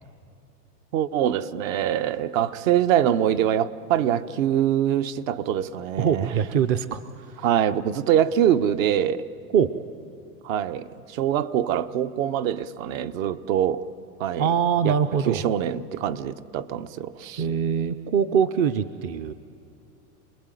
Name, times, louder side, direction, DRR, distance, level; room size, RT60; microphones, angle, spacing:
voice 1, 0.9-6.3 7.4-9.2 10.4-13.8 14.2-14.5 14.8-15.0 15.3-17.4, right 10 dB, 55° right, 1.1 m, -24 dB
voice 2, 6.0-7.5 9.5-9.7 14.4-15.4 17.4-19.3, right 7 dB, 30° right, 0.6 m, -23 dB
28.0 x 20.5 x 9.2 m
hypercardioid pair, 130°, 47 cm